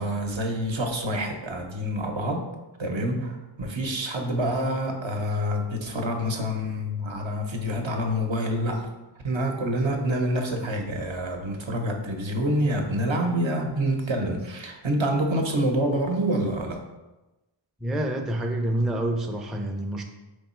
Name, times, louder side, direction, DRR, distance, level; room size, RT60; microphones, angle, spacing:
voice 1, 0.0-2.5 2.8-8.9 9.2-16.8, equal, 70° right, 3 dB, 0.8 m, -27 dB
voice 2, 17.8-20.0, right 1 dB, ahead, 3 dB, 0.4 m, -27 dB
3.7 x 3.3 x 4.3 m, 1.0 s
wide cardioid pair, 60°, 48 cm